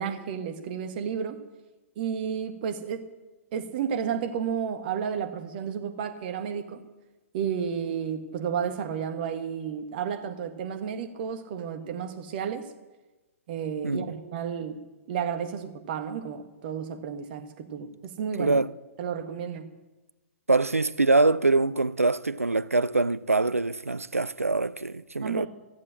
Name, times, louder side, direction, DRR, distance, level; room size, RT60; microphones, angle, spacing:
voice 1, 0.0-1.4 1.9-3.0 3.5-6.8 7.3-12.7 13.5-14.8 15.1-18.5 19.0-19.7 25.2-25.5, right 7 dB, 40° right, 1.6 m, -32 dB
voice 2, 20.5-25.5, right 3 dB, 85° right, 0.4 m, -24 dB
15.0 x 7.5 x 7.5 m
figure-of-eight pair, 115°, 7 cm